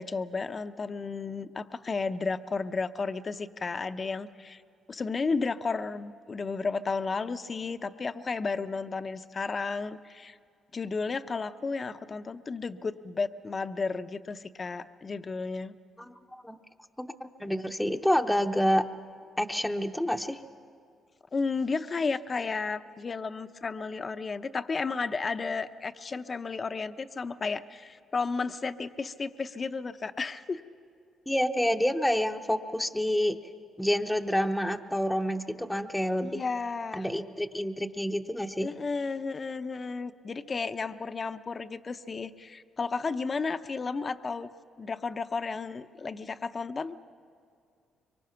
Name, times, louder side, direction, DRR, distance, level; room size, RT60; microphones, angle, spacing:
voice 1, 0.0-4.6 4.9-10.4 10.7-15.7 21.3-30.6 36.2-37.1 38.6-44.5 44.8-47.0, left 4 dB, 35° left, 10 dB, 0.8 m, -33 dB
voice 2, 16.0-16.6 17.0-18.9 19.4-20.4 31.3-33.4 33.8-36.4 36.9-38.7, equal, 5° left, 5 dB, 0.9 m, -28 dB
25.0 x 23.5 x 5.8 m, 2.3 s
cardioid pair, 90°, 0 cm